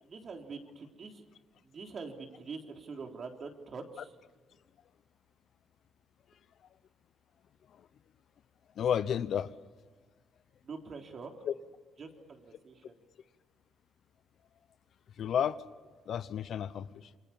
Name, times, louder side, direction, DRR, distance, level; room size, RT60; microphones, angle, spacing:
voice 1, 0.0-1.3 1.6-4.1 10.6-11.3 12.0-12.9, right 4 dB, 50° right, 3.6 m, -44 dB
voice 2, 8.8-9.5 11.5-11.6 15.2-15.6 16.1-17.1, left 9 dB, 65° left, 0.9 m, -31 dB
27.0 x 23.0 x 7.2 m
cardioid pair, 90°, 0 cm